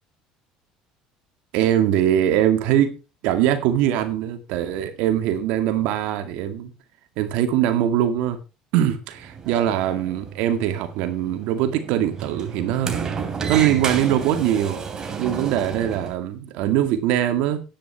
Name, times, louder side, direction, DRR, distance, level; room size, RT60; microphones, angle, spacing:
voice 1, 1.5-3.0 3.2-6.7 7.2-8.4 8.7-13.0 13.5-14.8 15.2-17.6, right 11 dB, 75° right, 2.1 m, -22 dB
Sliding door, 9.1-16.1, right 6 dB, 30° right, 3.0 m, -31 dB
10.0 x 9.9 x 4.6 m
supercardioid pair, 115°, 2 cm